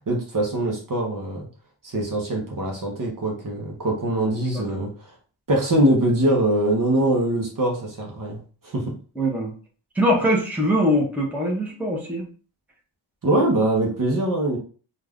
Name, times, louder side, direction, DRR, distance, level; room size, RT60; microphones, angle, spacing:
voice 1, 0.1-1.5 1.8-5.1 5.5-8.9 13.2-14.6, right 1 dB, 40° right, 0 dB, 0.7 m, -23 dB
voice 2, 4.5-4.9 9.2-9.5 9.9-12.2, equal, 5° right, -2 dB, 0.7 m, -22 dB
2.5 x 2.3 x 3.4 m, 0.39 s
wide cardioid pair, 145°, 48 cm